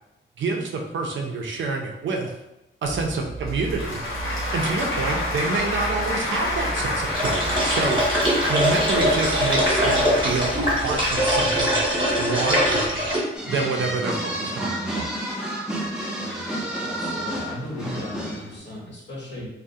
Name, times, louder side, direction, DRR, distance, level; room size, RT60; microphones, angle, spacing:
voice 1, 0.4-2.3 2.8-4.0 4.5-8.0 8.5-11.8 12.2-13.0 13.4-15.1, right 3 dB, 70° right, 2 dB, 0.4 m, -27 dB
Applause / Crowd, 2.8-11.6, left 1 dB, 90° left, 0.9 m, -28 dB
sound 1, 7.1-13.2, equal, 25° right, 0.8 m, -22 dB
sound 2, 13.3-18.6, right 1 dB, 5° right, 0.4 m, -30 dB
voice 2, 13.4-13.9 16.1-16.5 16.8-19.5, left 1 dB, 60° left, -4 dB, 0.9 m, -37 dB
2.3 x 2.0 x 2.6 m, 0.93 s
wide cardioid pair, 130°, 20 cm